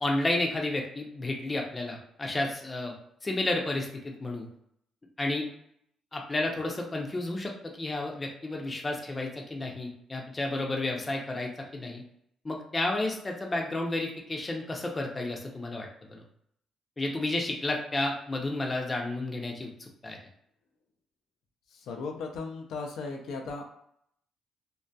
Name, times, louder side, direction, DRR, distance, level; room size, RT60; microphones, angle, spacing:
voice 1, 0.0-2.9 3.2-4.5 5.2-5.5 6.1-12.0 12.4-16.2 17.0-20.2, left 2 dB, 25° left, 0 dB, 0.5 m, -31 dB
voice 2, 21.7-23.6, left 4 dB, 80° left, 2 dB, 0.4 m, -36 dB
2.6 x 2.2 x 2.2 m, 0.70 s
cardioid pair, 90°, 0 cm